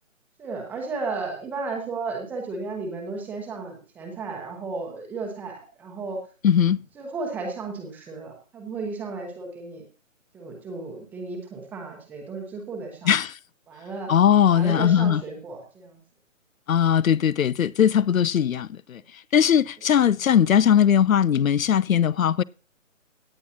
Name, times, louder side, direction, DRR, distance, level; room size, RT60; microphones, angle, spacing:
voice 1, 0.4-6.2 6.9-9.8 10.3-13.1 13.7-14.1 14.5-16.0 21.3-21.4, right 4 dB, 5° right, 0.9 m, -34 dB
voice 2, 6.4-6.8 13.0-13.3 14.1-15.2 16.7-19.0 19.3-22.4, left 9 dB, 85° left, 0.5 m, -19 dB
17.0 x 9.3 x 2.9 m
figure-of-eight pair, 145°, 40 cm